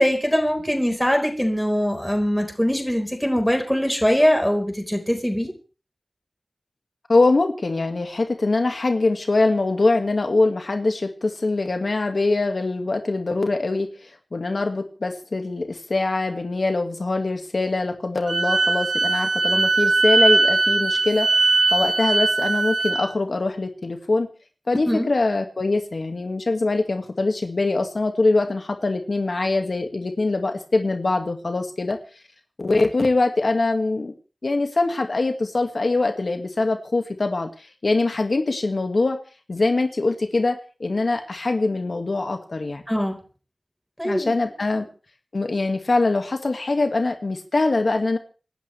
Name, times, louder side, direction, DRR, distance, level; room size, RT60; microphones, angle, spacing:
voice 1, 0.0-5.5 24.8-25.1 42.9-43.2 44.0-44.3, equal, 5° left, 3 dB, 4.5 m, -22 dB
voice 2, 7.1-24.3 24.7-32.0 32.6-34.1 34.4-39.2 39.5-42.8 44.0-44.9 45.3-48.2, left 3 dB, 70° left, 5 dB, 1.9 m, -23 dB
Wind instrument woodwind instrument, 18.3-23.0, right 3 dB, 90° right, 2.7 m, -20 dB
27.0 x 12.5 x 3.3 m, 0.37 s
wide cardioid pair, 45°, 0 cm